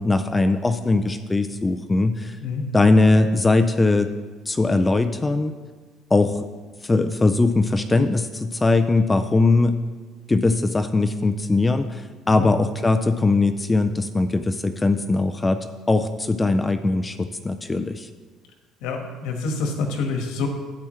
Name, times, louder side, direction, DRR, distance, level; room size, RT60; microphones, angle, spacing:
voice 1, 0.0-2.4 2.7-4.1 4.5-5.5 6.1-6.5 6.8-9.8 10.3-18.1, left 3 dB, 15° left, 8 dB, 0.4 m, -20 dB
voice 2, 18.8-20.5, left 4 dB, 85° left, 3 dB, 1.4 m, -27 dB
12.0 x 8.4 x 3.2 m, 1.4 s
cardioid pair, 150°, 0 cm